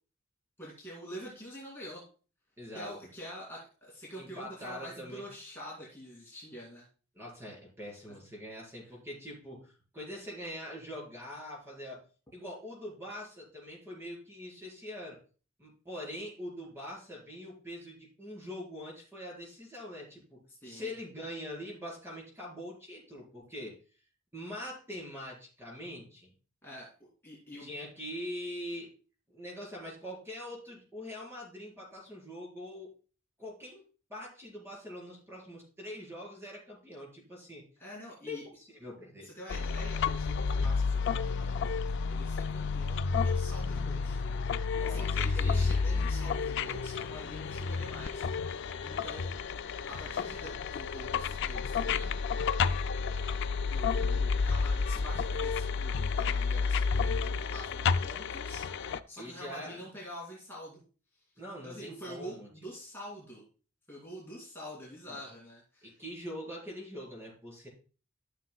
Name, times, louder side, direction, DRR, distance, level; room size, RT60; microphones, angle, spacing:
voice 1, 0.6-2.0 2.7-6.8 8.1-8.3 20.6-21.0 26.6-26.9 27.2-27.7 37.8-38.4 39.2-41.6 42.1-44.2 44.8-48.5 48.8-49.3 49.9-52.2 53.2-58.7 59.1-60.8 61.6-63.4 63.9-65.9, equal, 10° left, -6 dB, 2.4 m, -46 dB
voice 2, 2.6-2.9 4.2-5.3 7.1-12.0 12.3-15.2 15.6-23.7 24.3-26.3 27.6-28.9 29.3-32.9 33.4-33.8 34.1-37.6 38.2-39.3 44.7-45.7 59.2-59.9 61.4-62.5 65.1-65.2 65.8-67.7, left 1 dB, 15° right, -2 dB, 4.3 m, -43 dB
sound 1, 39.5-59.0, left 5 dB, 65° left, 0.4 m, -31 dB
13.5 x 6.7 x 2.3 m, 0.38 s
head